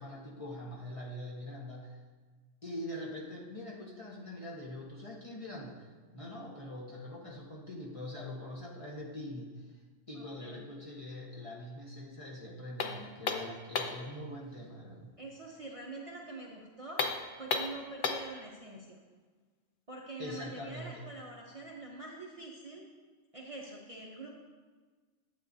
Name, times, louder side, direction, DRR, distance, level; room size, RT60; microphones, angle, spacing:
voice 1, 0.0-2.0 2.6-9.7 10.1-15.1 20.2-21.0, left 1 dB, 30° left, -4 dB, 1.3 m, -43 dB
voice 2, 10.1-10.7 15.2-17.0 17.4-19.0 19.9-22.8 23.3-24.3, right 2 dB, 30° right, -2 dB, 0.9 m, -45 dB
sound 1, 12.8-14.1 16.9-18.4, left 4 dB, 55° left, 0.7 m, -34 dB
11.5 x 8.4 x 2.7 m, 1.4 s
omnidirectional pair, 1.3 m